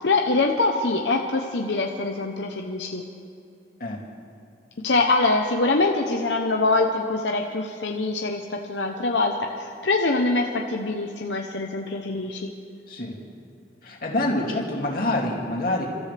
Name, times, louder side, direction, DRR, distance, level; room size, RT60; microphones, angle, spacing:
voice 1, 0.0-3.0 4.8-12.5, left 3 dB, 85° left, 2 dB, 0.9 m, -24 dB
voice 2, 13.8-15.9, left 1 dB, 55° left, -2 dB, 2.7 m, -26 dB
29.0 x 13.5 x 3.4 m, 2.5 s
head